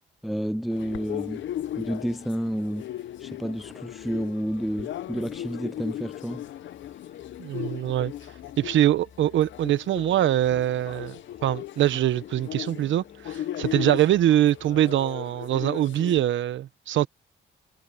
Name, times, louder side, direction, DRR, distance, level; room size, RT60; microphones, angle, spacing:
voice 1, 0.2-1.4 1.8-2.8 3.2-6.4, equal, ahead, 0.4 m, -30 dB
sound 1, 0.7-16.2, left 12 dB, 70° left, 0.8 m, -37 dB
sound 2, 0.8-15.0, left 6 dB, 45° left, 4.4 m, -55 dB
voice 2, 7.4-8.1 8.6-11.2 11.4-17.1, right 12 dB, 75° right, 1.1 m, -23 dB
cardioid pair, 90°, 20 cm